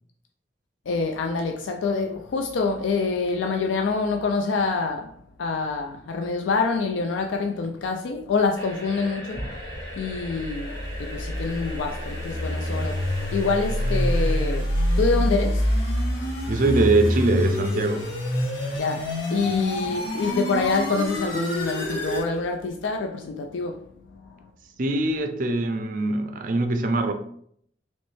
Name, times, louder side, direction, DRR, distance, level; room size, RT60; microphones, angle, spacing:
voice 1, 0.9-5.1 5.4-14.7 15.0-15.7 18.8-19.1 19.3-23.8, left 4 dB, 85° left, 0.3 m, -26 dB
sound 1, 8.5-14.6, left 1 dB, 20° left, 0.7 m, -38 dB
sound 2, 10.1-22.3, equal, 70° left, 0.9 m, -26 dB
voice 2, 16.5-18.1 19.4-19.5 24.8-27.1, right 2 dB, 45° right, 0.4 m, -23 dB
3.1 x 3.1 x 3.1 m
head